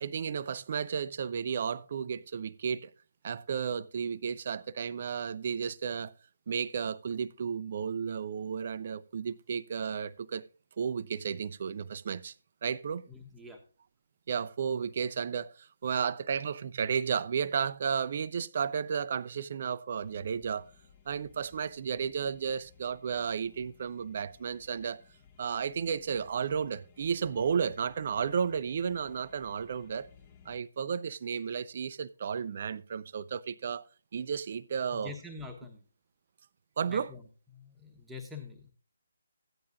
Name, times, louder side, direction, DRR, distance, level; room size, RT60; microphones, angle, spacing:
voice 1, 0.0-2.9 3.2-6.1 6.5-10.4 10.8-12.3 12.6-13.1 14.3-20.7 21.1-25.0 25.4-30.1 30.5-33.8 34.1-35.1 36.8-37.1, right 7 dB, 45° right, 0.5 m, -33 dB
voice 2, 13.1-13.6 34.9-35.8 36.9-38.7, left 3 dB, 5° right, 1.1 m, -45 dB
sound 1, 19.9-30.6, left 7 dB, 25° left, 1.0 m, -60 dB
15.0 x 10.5 x 2.5 m
figure-of-eight pair, 145°, 0 cm